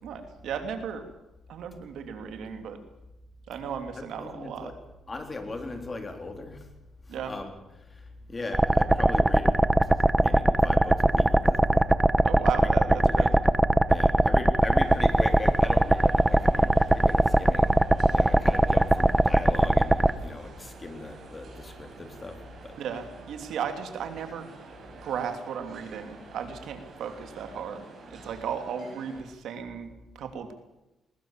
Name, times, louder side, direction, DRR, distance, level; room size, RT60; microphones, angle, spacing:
voice 1, 0.0-1.0 1.5-2.8 3.5-4.7 7.1-7.3 12.2-13.3 22.8-24.5 24.9-27.8 28.1-30.5, right 7 dB, 75° right, 7 dB, 2.8 m, -35 dB
voice 2, 4.0-4.7 5.1-6.6 7.3-7.5 8.3-9.6 10.2-11.8 12.5-13.4 13.9-17.8 18.1-22.4 22.6-22.7, left 2 dB, 25° left, 6 dB, 3.6 m, -38 dB
sound 1, 8.5-20.1, right 1 dB, 15° right, 0.9 m, -21 dB
sound 2, 14.7-29.2, right 3 dB, 50° right, 6.6 m, -48 dB
21.0 x 20.5 x 7.5 m, 0.98 s
cardioid pair, 120°, 0 cm